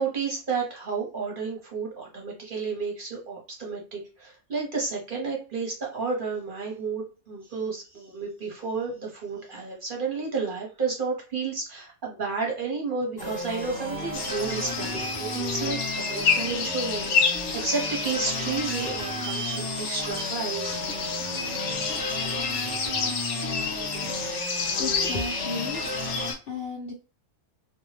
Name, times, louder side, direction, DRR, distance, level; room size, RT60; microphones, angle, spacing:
voice 1, 0.0-20.8, right 4 dB, 45° right, -1 dB, 0.8 m, -31 dB
sound 1, 13.2-26.3, equal, 20° left, 0.7 m, -33 dB
sound 2, 14.1-26.4, left 6 dB, 80° left, 1.0 m, -30 dB
voice 2, 24.7-25.8 26.4-26.9, left 4 dB, 65° left, 1 dB, 0.6 m, -33 dB
2.6 x 2.2 x 3.1 m, 0.33 s
omnidirectional pair, 1.5 m